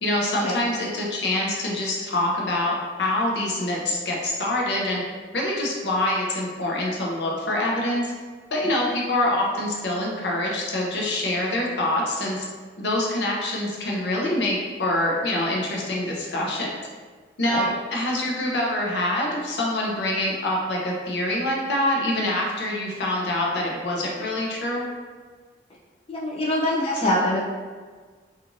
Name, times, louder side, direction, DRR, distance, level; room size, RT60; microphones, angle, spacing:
voice 1, 0.0-5.0 5.3-8.1 8.5-12.4 12.8-16.7 17.4-24.8, left 1 dB, 75° left, -2 dB, 0.6 m, -25 dB
voice 2, 26.1-27.4, left 1 dB, 30° left, -5 dB, 0.4 m, -24 dB
3.0 x 2.4 x 2.5 m, 1.5 s
head